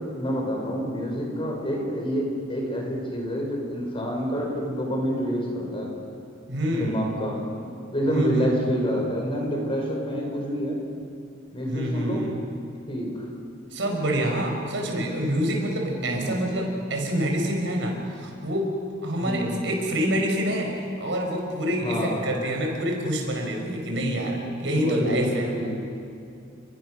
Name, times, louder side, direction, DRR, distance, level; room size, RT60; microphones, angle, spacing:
voice 1, 0.2-5.9 6.7-7.4 7.6-10.8 11.5-12.2 12.9-13.3 16.0-16.4 19.2-19.6 21.8-22.2 24.7-25.7, equal, 30° left, 0 dB, 5.7 m, -28 dB
voice 2, 6.5-7.1 8.1-8.8 11.7-12.3 13.7-18.7 19.0-25.7, equal, 75° right, 2 dB, 5.3 m, -27 dB
30.0 x 23.0 x 6.4 m, 2.5 s
head